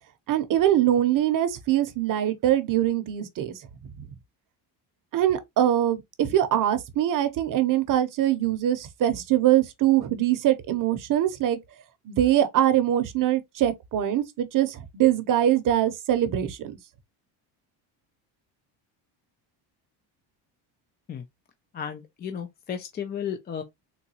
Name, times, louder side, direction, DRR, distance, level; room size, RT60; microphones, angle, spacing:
voice 1, 0.3-3.5 4.0-4.1 5.1-11.6 12.1-16.8, right 12 dB, 45° right, 0.7 m, -23 dB
voice 2, 21.7-23.6, left 8 dB, 25° left, 0.3 m, -34 dB
3.9 x 2.3 x 2.8 m
cardioid pair, 125°, 46 cm